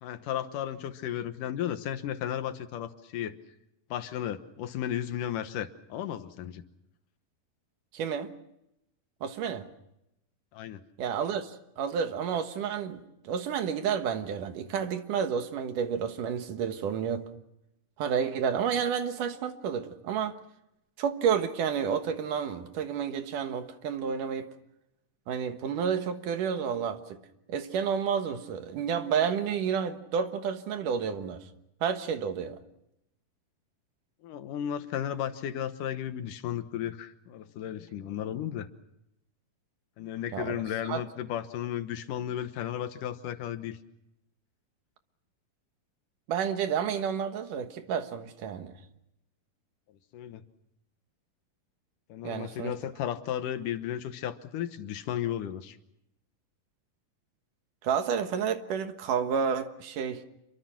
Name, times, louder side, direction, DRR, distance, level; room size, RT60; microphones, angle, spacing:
voice 1, 0.0-3.4 3.9-6.6 10.5-10.8 34.2-38.7 40.0-43.8 50.1-50.4 52.1-55.8, left 10 dB, 75° left, 2.6 m, -34 dB
voice 2, 7.9-8.3 9.2-9.6 11.0-17.2 18.0-20.4 21.0-24.5 25.3-27.2 27.5-31.4 31.8-32.6 40.3-40.6 40.9-41.0 46.3-48.7 52.2-52.7 57.8-60.2, right 7 dB, 75° right, 2.9 m, -30 dB
27.5 x 23.5 x 6.0 m
omnidirectional pair, 3.9 m